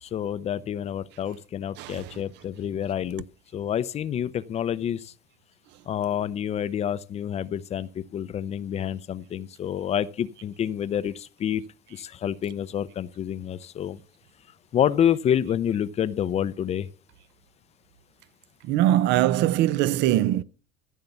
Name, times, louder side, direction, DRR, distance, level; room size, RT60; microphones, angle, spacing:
voice 1, 0.0-3.2 3.5-5.1 5.9-11.6 11.9-14.0 14.7-16.9, left 9 dB, 30° left, 0.6 m, -28 dB
voice 2, 18.7-20.4, right 13 dB, 55° right, 0.6 m, -21 dB
14.5 x 6.6 x 7.0 m
cardioid pair, 140°, 21 cm